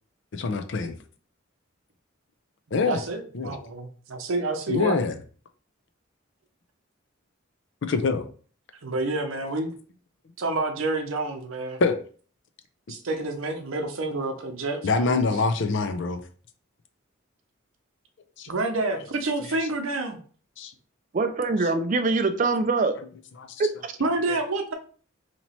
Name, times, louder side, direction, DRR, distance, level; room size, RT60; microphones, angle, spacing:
voice 1, 0.3-1.0 2.7-3.0 3.3-3.5 4.7-5.2 7.8-8.3 11.8-12.0 14.8-16.2 18.4-18.5 20.6-20.7 23.4-23.5, left 4 dB, 60° left, 8 dB, 0.5 m, -24 dB
voice 2, 2.8-5.1 8.8-9.7 10.4-11.8 12.9-15.2 18.5-20.2 24.0-24.7, right 2 dB, 85° right, 5 dB, 0.7 m, -28 dB
voice 3, 21.1-23.0 23.6-23.9, right 3 dB, 40° right, 9 dB, 0.4 m, -24 dB
3.0 x 2.9 x 4.2 m, 0.42 s
head